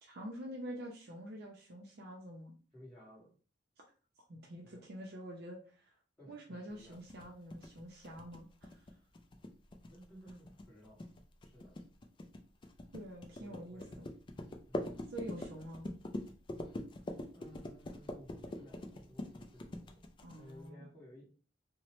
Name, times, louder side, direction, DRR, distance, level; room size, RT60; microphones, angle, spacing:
voice 1, 0.0-2.6 4.3-5.9 6.3-8.8 12.9-13.8 15.1-15.9 20.2-20.9, equal, 60° right, -1 dB, 0.5 m, -47 dB
voice 2, 2.7-3.3 4.6-4.8 6.2-7.0 9.9-11.0 11.4-11.8 13.4-14.1 14.7-15.1 17.3-20.0 20.4-21.2, equal, 5° left, -9 dB, 1.4 m, -56 dB
sound 1, 6.9-20.7, left 1 dB, 25° left, 0.3 m, -44 dB
2.9 x 2.1 x 2.9 m, 0.39 s
head